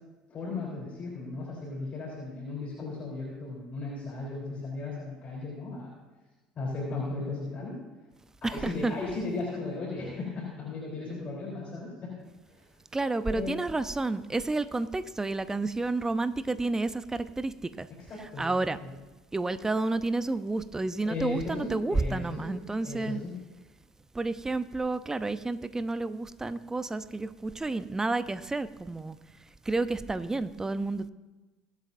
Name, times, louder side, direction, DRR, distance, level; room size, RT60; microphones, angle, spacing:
voice 1, 0.3-5.9 6.6-7.8 8.4-12.1 12.5-12.6 13.3-13.5 18.1-18.5 18.8-18.9 21.0-22.5 22.8-23.3, left 3 dB, 40° left, -4 dB, 3.8 m, -36 dB
voice 2, 8.4-9.0 12.9-17.9 18.4-18.8 19.3-23.2 24.1-29.2 29.6-31.1, right 2 dB, 15° right, 13 dB, 0.7 m, -30 dB
22.5 x 8.4 x 2.7 m, 1.2 s
hypercardioid pair, 75°, 4 cm